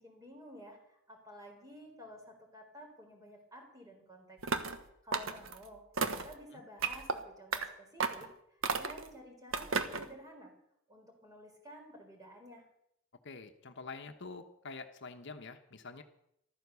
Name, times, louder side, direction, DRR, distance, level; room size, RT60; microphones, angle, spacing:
voice 1, 0.0-4.4 5.0-5.8 6.1-10.5 10.9-12.6, equal, 20° right, 2 dB, 4.1 m, -52 dB
sound 1, 4.4-4.8 5.1-5.6 6.0-6.3 6.8-7.2 7.5-7.7 8.0-8.3 8.6-9.1 9.5-10.1, right 5 dB, 80° right, 1.3 m, -33 dB
voice 2, 13.2-16.0, left 4 dB, 60° left, 7 dB, 1.1 m, -46 dB
14.5 x 13.0 x 7.0 m, 0.77 s
head